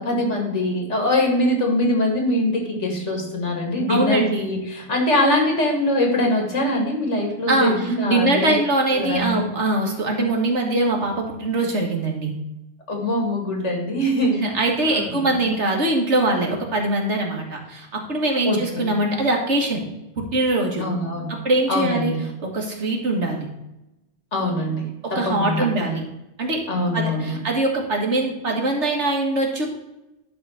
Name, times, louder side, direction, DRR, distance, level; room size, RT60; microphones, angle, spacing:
voice 1, 0.0-8.5 8.9-9.5 12.9-14.4 14.8-15.1 15.4-15.5 18.4-18.9 20.8-21.3 21.7-22.2 24.3-26.0 26.7-27.4, left 1 dB, 85° left, 1 dB, 2.7 m, -23 dB
voice 2, 3.9-4.5 7.5-12.3 14.3-19.8 20.2-20.8 21.3-22.1 22.4-23.5 25.0-26.0 26.4-29.7, right 2 dB, 75° right, 1 dB, 2.1 m, -22 dB
11.0 x 3.9 x 6.5 m, 0.93 s
omnidirectional pair, 1.2 m